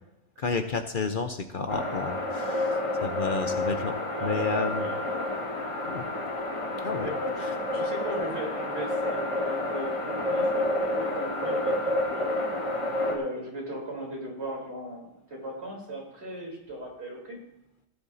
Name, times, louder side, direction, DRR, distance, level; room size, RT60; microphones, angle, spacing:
voice 1, 0.4-3.9 4.2-4.9 5.9-6.1 6.8-7.1 7.4-7.5, left 4 dB, 50° left, 7 dB, 0.8 m, -31 dB
sound 1, 1.7-13.1, left 1 dB, 25° left, 1.7 m, -29 dB
voice 2, 4.1-5.0 7.0-12.4 13.1-17.4, right 1 dB, 65° right, -2 dB, 3.8 m, -38 dB
17.0 x 10.5 x 2.7 m, 0.82 s
omnidirectional pair, 1.2 m